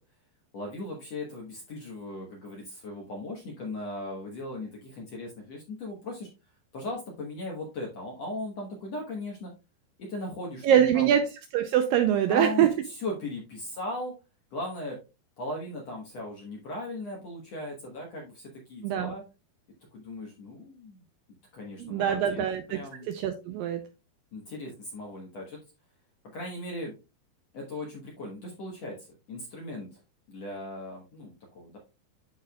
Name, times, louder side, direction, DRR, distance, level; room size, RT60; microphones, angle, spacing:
voice 1, 0.5-6.3 6.7-9.5 10.0-11.1 12.3-14.1 14.5-15.0 15.4-19.2 19.9-21.0 21.5-23.1 24.3-25.6 26.3-26.9 27.5-29.9 30.3-31.8, left 1 dB, 65° left, -1 dB, 1.7 m, -38 dB
voice 2, 10.6-11.2 11.5-12.7 18.8-19.1 21.8-23.8, right 10 dB, 85° right, 7 dB, 2.1 m, -24 dB
12.0 x 4.5 x 2.3 m, 0.28 s
omnidirectional pair, 4.6 m